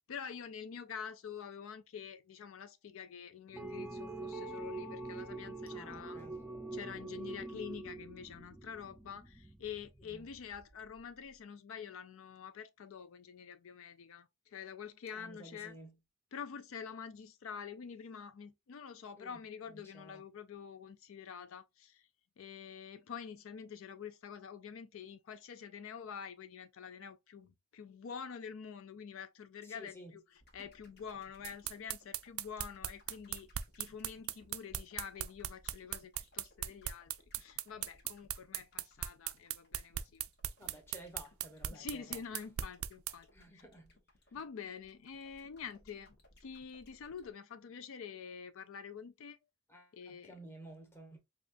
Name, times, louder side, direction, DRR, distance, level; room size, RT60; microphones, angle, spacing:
voice 1, 0.0-6.2 6.7-15.8 16.3-22.1 22.4-30.2 30.5-33.5 33.8-40.3 40.7-40.8 41.7-43.6 44.3-46.1 46.4-49.4 49.9-50.3, left 7 dB, 70° left, 0.4 m, -47 dB
sound 1, 3.5-11.1, right 2 dB, 5° right, 0.5 m, -45 dB
voice 2, 5.7-6.4 10.0-10.3 15.1-15.9 19.2-19.4 19.7-20.2 29.6-30.1 30.6-30.7 40.6-42.2 43.3-44.0 49.7-51.2, right 1 dB, 10° left, 1.0 m, -53 dB
sound 2, 30.4-47.3, left 1 dB, 50° left, 1.2 m, -64 dB
sound 3, 31.4-43.1, right 12 dB, 75° right, 0.4 m, -38 dB
5.2 x 2.4 x 2.5 m
head